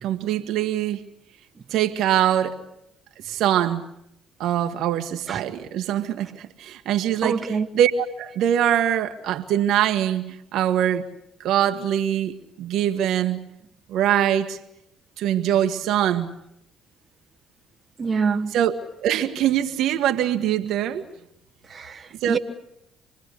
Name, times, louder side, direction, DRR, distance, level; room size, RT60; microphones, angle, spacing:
voice 1, 0.0-1.0 1.7-2.6 3.2-3.8 4.4-11.1 11.4-13.4 13.9-14.6 15.2-16.3 18.5-21.1 22.2-22.4, right 10 dB, 70° right, 1.5 m, -23 dB
voice 2, 7.2-7.7 18.0-18.5 21.7-22.4, right 5 dB, 40° right, 1.4 m, -25 dB
27.0 x 20.5 x 8.4 m
supercardioid pair, 65°, 0 cm